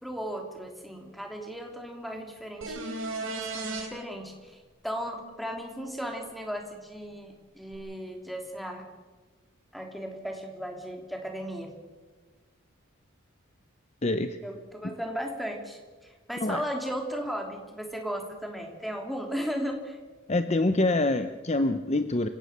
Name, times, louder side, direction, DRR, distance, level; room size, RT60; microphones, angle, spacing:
voice 1, 0.0-4.6 4.8-8.8 9.7-11.7 14.4-20.0, equal, ahead, 2 dB, 3.1 m, -36 dB
sound 1, 2.6-3.9 7.7-7.8, right 3 dB, 70° right, 4.8 m, -34 dB
voice 2, 14.0-14.4 16.4-16.6 20.3-22.3, left 2 dB, 30° left, 9 dB, 0.7 m, -25 dB
28.0 x 17.0 x 6.7 m, 1.3 s
head